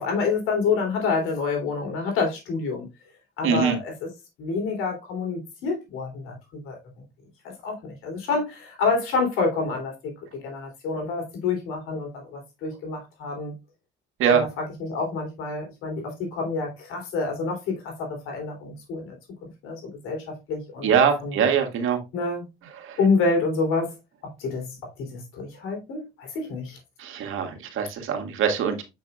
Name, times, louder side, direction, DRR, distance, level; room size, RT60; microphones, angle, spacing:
voice 1, 0.0-2.9 3.4-4.1 4.4-6.8 7.6-10.1 10.4-13.5 14.3-19.1 19.4-21.4 22.1-22.4 23.0-23.9 24.4-26.8, left 4 dB, 90° left, 3.3 m, -28 dB
voice 2, 3.4-3.8 14.2-14.4 20.8-22.0 22.8-23.0 27.0-28.8, right 7 dB, 75° right, 1.8 m, -23 dB
7.4 x 6.0 x 2.3 m
supercardioid pair, 75°, 21 cm